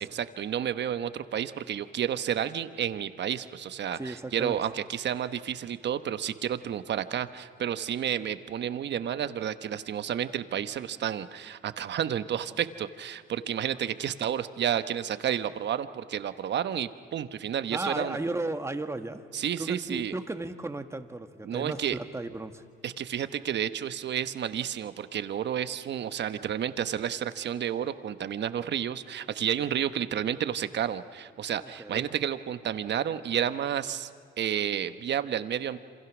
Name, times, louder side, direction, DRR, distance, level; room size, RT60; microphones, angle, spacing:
voice 1, 0.1-18.2 19.3-20.1 21.5-22.0 22.8-34.1 34.4-35.8, right 9 dB, 60° right, 11 dB, 1.1 m, -31 dB
voice 2, 3.9-4.6 17.7-19.2 19.6-22.6 31.6-32.1, right 2 dB, 15° right, 8 dB, 1.6 m, -35 dB
28.0 x 26.5 x 6.2 m, 2.2 s
cardioid pair, 90°, 20 cm